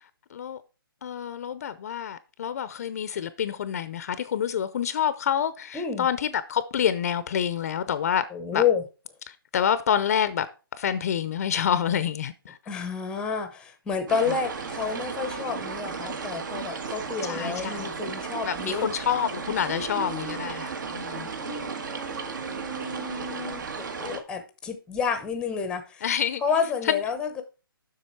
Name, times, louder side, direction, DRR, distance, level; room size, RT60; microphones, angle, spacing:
voice 1, 1.0-8.2 8.5-8.6 9.3-10.5 10.8-12.6 14.3-14.4 17.2-17.9 18.4-21.3 26.0-26.4 26.8-27.0, left 9 dB, 40° left, 0.6 m, -27 dB
voice 2, 5.7-6.1 8.3-8.8 12.7-18.9 19.7-20.5 21.4-26.0 26.4-27.4, left 6 dB, 5° left, 0.8 m, -30 dB
sound 1, 14.1-24.2, right 5 dB, 55° right, 1.5 m, -34 dB
7.5 x 6.1 x 4.6 m
hypercardioid pair, 155°, 12 cm